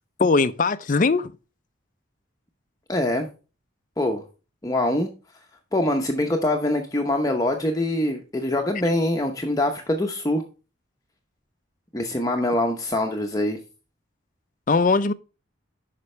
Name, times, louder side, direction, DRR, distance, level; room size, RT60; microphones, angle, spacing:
voice 1, 0.2-1.3 14.7-15.1, left 4 dB, 40° left, 0.5 m, -20 dB
voice 2, 2.9-3.3 4.0-4.2 4.6-5.1 5.7-10.4 11.9-13.6, left 1 dB, 15° left, 0.8 m, -24 dB
9.6 x 5.9 x 3.2 m
head